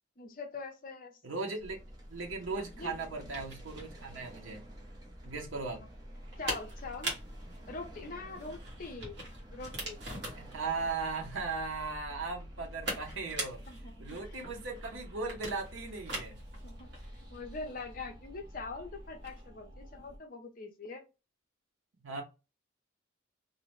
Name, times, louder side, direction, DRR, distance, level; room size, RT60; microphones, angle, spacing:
voice 1, 0.2-1.2 2.6-2.9 5.7-5.9 6.4-7.1 7.7-9.2 9.5-10.0 13.7-14.4 16.6-16.9 17.3-21.0, left 3 dB, 45° left, 4 dB, 0.6 m, -43 dB
voice 2, 1.2-1.8 2.1-4.6 5.2-5.8 10.4-13.6 14.0-16.4 22.0-22.2, right 4 dB, 80° right, 2 dB, 0.7 m, -37 dB
sound 1, 1.6-20.2, equal, 20° right, 0.5 m, -49 dB
sound 2, 2.1-19.5, right 1 dB, 60° right, 1.2 m, -44 dB
2.7 x 2.0 x 3.0 m, 0.28 s
head